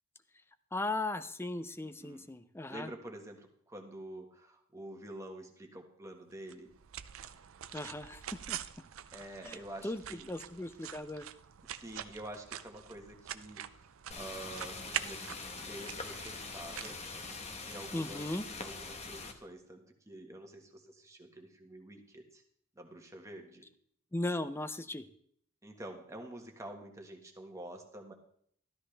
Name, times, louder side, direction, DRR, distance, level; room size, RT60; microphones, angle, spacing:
voice 1, 0.7-2.9 7.7-8.6 9.5-9.6 9.8-10.0 10.3-11.3 17.9-18.4 24.1-25.1, left 2 dB, 10° left, 12 dB, 0.5 m, -37 dB
voice 2, 1.8-2.3 2.7-6.7 9.1-10.3 11.6-13.8 14.1-15.3 15.6-17.0 17.6-18.2 18.5-22.4 22.7-23.7 25.6-28.1, right 1 dB, 15° right, 3 dB, 1.5 m, -48 dB
sound 1, 6.5-17.8, right 10 dB, 65° right, 0.5 m, -45 dB
sound 2, 14.1-19.3, left 4 dB, 30° left, 1.1 m, -43 dB
13.0 x 13.0 x 3.4 m, 0.64 s
head